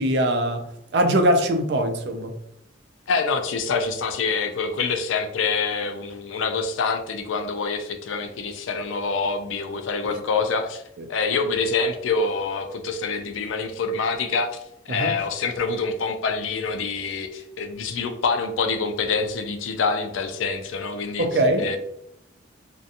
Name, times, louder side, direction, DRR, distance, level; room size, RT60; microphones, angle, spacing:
voice 1, 0.0-2.3 10.1-10.2 11.0-11.1 14.9-15.1 21.2-21.7, right 1 dB, 60° right, 0.4 m, -22 dB
voice 2, 3.1-10.8 11.1-14.6 14.9-21.3 21.6-21.8, left 4 dB, 90° left, 0.4 m, -26 dB
2.5 x 2.2 x 2.7 m
head